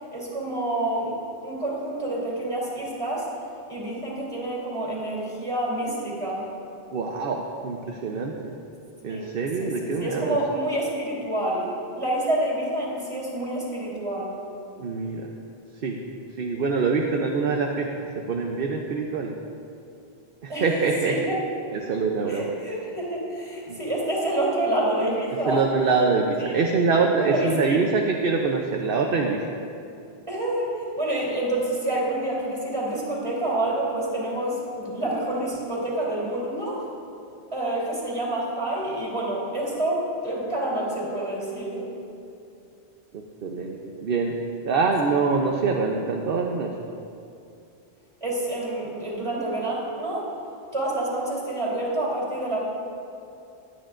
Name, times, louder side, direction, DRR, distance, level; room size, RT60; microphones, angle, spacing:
voice 1, 0.1-1.2 1.4-3.3 3.7-6.5 9.1-9.3 9.6-11.7 11.9-14.4 20.5-20.8 21.0-21.3 22.3-25.6 26.4-26.5 27.2-27.8 30.3-36.8 37.5-41.9 48.2-50.3 50.7-52.6, right 1 dB, 25° right, -6 dB, 3.3 m, -28 dB
voice 2, 6.9-8.5 9.0-10.4 14.8-15.3 15.8-16.0 16.4-17.9 18.1-19.3 20.4-21.2 21.7-22.5 23.7-23.8 25.5-29.4 43.1-44.4 44.6-46.7, right 4 dB, 55° right, 1 dB, 0.9 m, -24 dB
20.5 x 9.2 x 2.5 m, 2.6 s
omnidirectional pair, 1.1 m